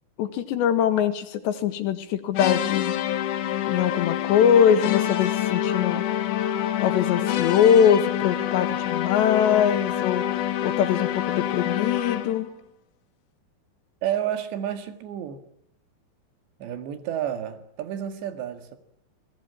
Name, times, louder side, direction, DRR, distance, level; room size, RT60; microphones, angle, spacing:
voice 1, 0.2-3.0 3.7-6.0 6.8-10.3 10.6-12.5, left 8 dB, 80° left, 9 dB, 4.0 m, -22 dB
sound 1, 2.3-12.5, left 11 dB, 65° left, 2.1 m, -26 dB
voice 2, 14.0-15.4 16.6-18.8, right 10 dB, 80° right, 8 dB, 4.1 m, -30 dB
26.5 x 20.5 x 8.8 m, 0.72 s
omnidirectional pair, 5.0 m